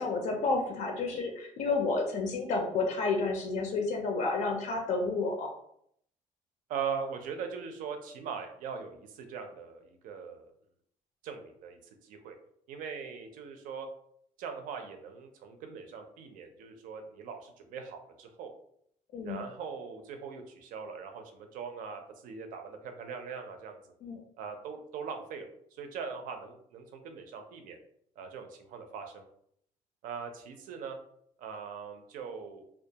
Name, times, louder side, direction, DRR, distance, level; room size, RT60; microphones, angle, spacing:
voice 1, 0.0-5.5 19.1-19.4 24.0-24.2, left 3 dB, 60° left, 2 dB, 0.4 m, -30 dB
voice 2, 6.7-10.5 11.2-12.4 12.7-13.9 14.4-18.5 19.2-23.8 24.4-27.8 28.2-29.2 30.0-31.0 31.4-32.6, right 6 dB, 75° right, 5 dB, 0.5 m, -41 dB
2.3 x 2.2 x 2.7 m, 0.70 s
cardioid pair, 145°, 14 cm